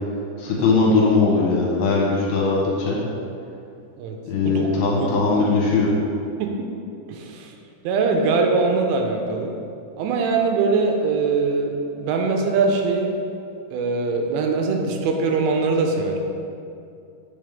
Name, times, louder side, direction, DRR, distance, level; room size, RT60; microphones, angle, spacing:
voice 1, 0.4-3.0 4.2-5.9, left 4 dB, 75° left, -4 dB, 2.8 m, -20 dB
voice 2, 5.0-5.4 6.4-6.7 7.1-7.5 7.9-9.5 10.0-13.1 13.7-16.2, right 4 dB, 85° right, 3 dB, 2.8 m, -22 dB
6.8 x 3.5 x 5.1 m, 2.6 s
omnidirectional pair, 5.2 m